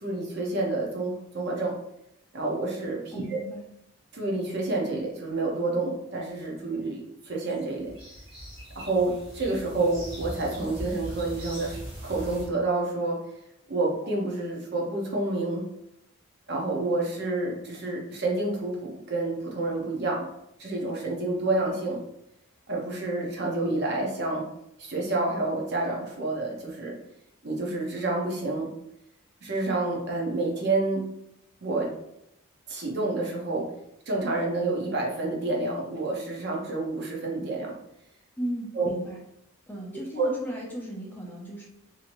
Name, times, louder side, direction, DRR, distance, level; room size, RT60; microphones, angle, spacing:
voice 1, 0.0-1.7 2.3-3.4 4.1-7.9 8.8-11.8 12.0-13.2 13.7-15.6 16.5-20.3 20.6-22.0 22.7-24.4 24.8-27.0 27.4-28.7 29.4-31.0 31.6-31.9 32.7-33.7 34.1-37.7 38.7-38.9 40.2-40.3, right 2 dB, 50° right, -1 dB, 0.6 m, -28 dB
voice 2, 3.1-3.7 38.4-39.2 39.7-41.6, right 1 dB, 10° left, -4 dB, 0.6 m, -36 dB
sound 1, 7.5-12.5, right 1 dB, 20° right, 1.1 m, -40 dB
3.1 x 2.7 x 2.5 m, 0.80 s
head